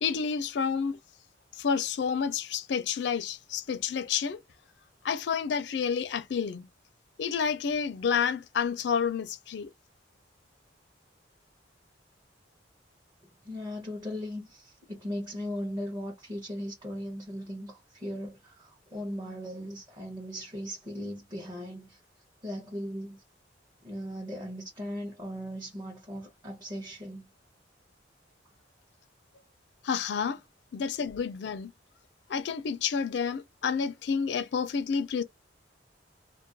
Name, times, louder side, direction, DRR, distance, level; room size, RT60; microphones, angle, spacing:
voice 1, 0.0-1.0 1.5-4.4 5.0-6.7 7.2-9.7 29.8-30.4 30.7-31.7 32.3-35.2, left 6 dB, 65° left, 0.4 m, -29 dB
voice 2, 13.4-22.0 22.4-23.2 23.8-27.3, equal, 20° right, 0.7 m, -38 dB
2.3 x 2.2 x 2.6 m
head